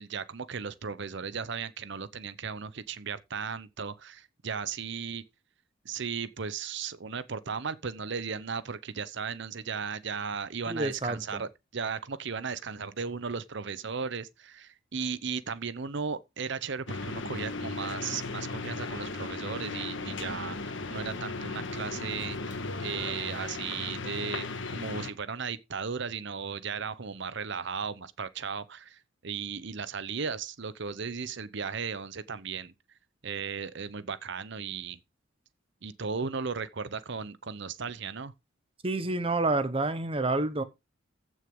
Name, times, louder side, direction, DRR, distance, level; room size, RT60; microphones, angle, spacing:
voice 1, 0.0-5.2 5.8-32.7 33.2-35.0 35.8-38.3, right 5 dB, 60° right, 0.8 m, -36 dB
voice 2, 10.7-11.4 38.8-40.6, right 2 dB, 30° right, 1.0 m, -29 dB
sound 1, 16.9-25.1, left 3 dB, 65° left, 1.4 m, -36 dB
15.0 x 6.3 x 3.7 m
head